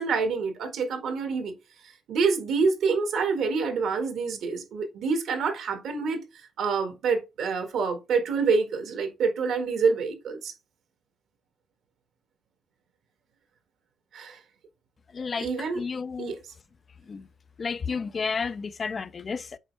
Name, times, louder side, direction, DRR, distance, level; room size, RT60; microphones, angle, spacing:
voice 1, 0.0-1.5 2.1-10.5 14.1-14.4 15.4-15.8 16.2-16.4, right 5 dB, 75° right, 1.6 m, -27 dB
voice 2, 15.1-15.5 15.8-16.3 17.1-17.2 17.6-19.6, left 5 dB, 40° left, 0.5 m, -31 dB
7.3 x 4.3 x 3.2 m
cardioid pair, 90°, 0 cm